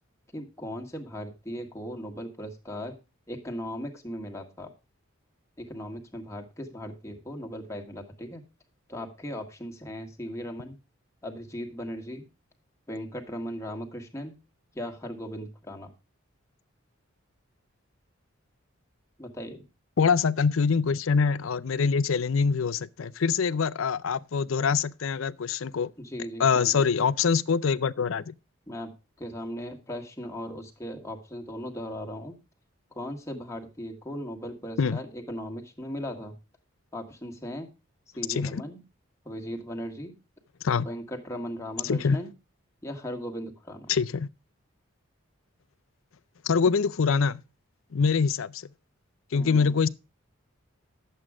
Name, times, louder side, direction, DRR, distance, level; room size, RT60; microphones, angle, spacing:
voice 1, 0.3-3.0 3.3-4.7 5.6-8.4 8.9-10.8 11.2-12.3 12.9-14.4 14.7-15.9 19.2-19.7 26.0-26.8 28.7-32.4 32.9-36.4 36.9-37.7 38.2-38.8 39.3-40.2 40.8-42.3 42.8-43.9 49.3-49.7, equal, 15° left, 1.6 m, -38 dB
voice 2, 20.0-25.9 26.4-28.3 34.8-35.0 38.3-38.6 40.6-40.9 41.8-42.2 43.9-44.3 46.4-47.4 47.9-48.7 49.3-49.9, left 5 dB, 75° left, 0.5 m, -24 dB
11.0 x 7.7 x 4.9 m
head